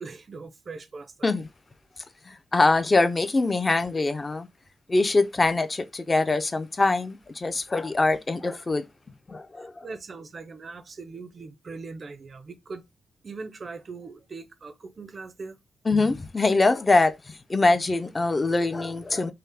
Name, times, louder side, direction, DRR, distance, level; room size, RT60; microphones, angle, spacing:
voice 1, 0.0-1.1 9.6-12.8 13.2-15.6, right 4 dB, 35° right, 0.5 m, -40 dB
voice 2, 2.3-4.5 4.9-8.8 9.3-9.7 15.9-19.3, left 3 dB, 20° left, 0.4 m, -23 dB
5.5 x 2.0 x 3.4 m
wide cardioid pair, 170°, 0 cm